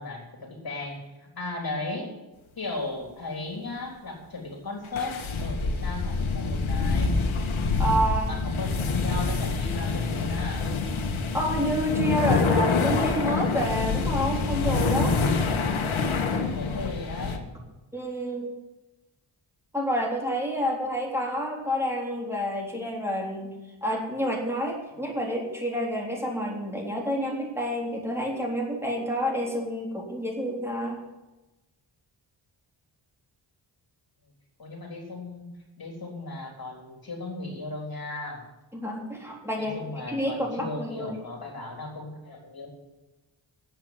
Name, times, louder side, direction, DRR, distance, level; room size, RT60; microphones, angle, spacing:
voice 1, 0.0-2.1 2.6-7.2 8.3-10.7 16.2-17.4 24.9-25.0 34.6-35.5 35.8-38.4 39.6-42.7, left 2 dB, 50° left, 1 dB, 3.7 m, -36 dB
sound 1, 5.0-17.4, left 4 dB, 80° left, 1.6 m, -26 dB
voice 2, 7.8-8.3 11.3-15.2 17.9-18.5 19.7-23.5 23.8-31.0 38.7-39.8 40.1-41.2, equal, 5° right, -2 dB, 3.7 m, -29 dB
10.5 x 8.2 x 9.3 m, 1.1 s
cardioid pair, 70°, 47 cm